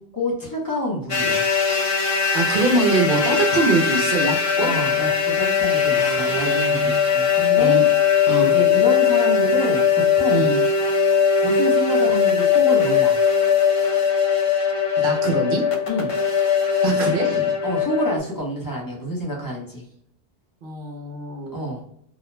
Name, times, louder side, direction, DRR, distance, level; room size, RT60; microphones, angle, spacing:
voice 1, 0.1-1.5 4.6-7.8 8.4-9.9 10.1-10.5 11.4-13.2 15.9-16.1 17.6-19.8 21.5-21.8, left 1 dB, 20° left, -3 dB, 0.7 m, -28 dB
sound 1, 1.1-18.2, left 6 dB, 55° left, 0.3 m, -20 dB
voice 2, 2.3-4.7 5.9-7.0 7.6-7.8 8.3-8.5 10.3-10.6 15.0-15.6 16.8-17.6 20.6-21.6, right 2 dB, 60° right, 1 dB, 0.7 m, -23 dB
2.4 x 2.1 x 3.0 m, 0.68 s
omnidirectional pair, 1.1 m